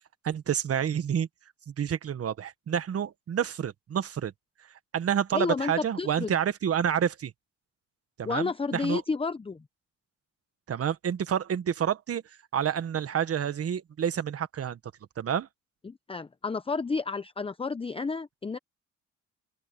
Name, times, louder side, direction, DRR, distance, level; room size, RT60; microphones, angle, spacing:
voice 1, 0.2-1.3 1.7-4.3 4.9-7.3 8.2-9.0 10.7-12.2 12.5-14.8 15.2-15.5, right 8 dB, 50° right, 1.5 m, -29 dB
voice 2, 5.3-6.3 8.2-9.6 15.8-18.6, left 4 dB, 20° left, 0.8 m, -31 dB
open air
cardioid pair, 90°, 30 cm